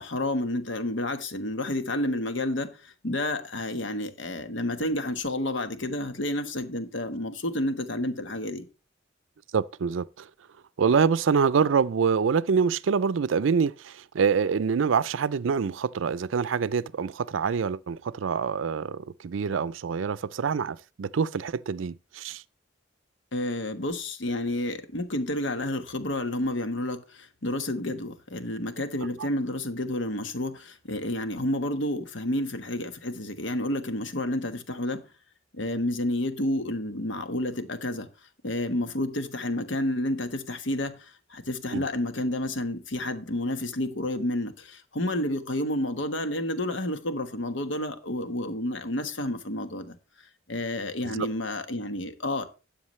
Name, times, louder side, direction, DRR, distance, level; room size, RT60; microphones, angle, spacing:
voice 1, 0.0-8.7 23.3-35.0 35.5-38.1 38.4-50.0 50.5-52.4, left 1 dB, 70° left, 1.3 m, -30 dB
voice 2, 9.5-10.3 10.8-22.4 41.7-41.8 51.0-51.3, right 6 dB, 85° right, 0.4 m, -26 dB
13.0 x 8.7 x 3.2 m
head